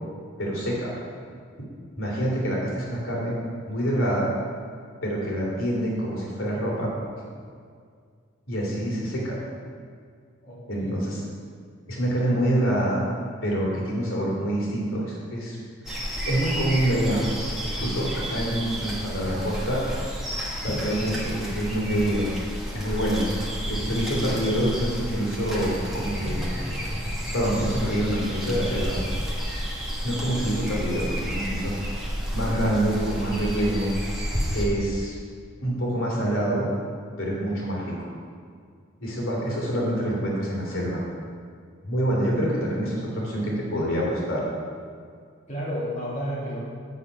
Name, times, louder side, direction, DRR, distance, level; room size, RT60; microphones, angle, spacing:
voice 1, 0.4-0.9 2.0-3.3 3.7-4.3 5.0-6.9 8.5-9.4 10.7-11.2 11.9-13.0 13.4-15.6 16.3-17.2 17.6-19.8 20.6-22.3 22.7-23.2 23.7-26.4 27.3-29.0 30.0-31.7 32.3-33.9 34.5-35.2 35.6-36.7 37.2-38.0 39.0-41.0 41.8-44.4, right 1 dB, 80° left, -4 dB, 2.7 m, -26 dB
voice 2, 10.4-10.9 45.5-46.6, equal, 35° left, -8 dB, 2.3 m, -31 dB
The Birds Of London, 15.8-34.6, equal, ahead, 1.3 m, -31 dB
8.3 x 7.0 x 5.4 m, 2.1 s
head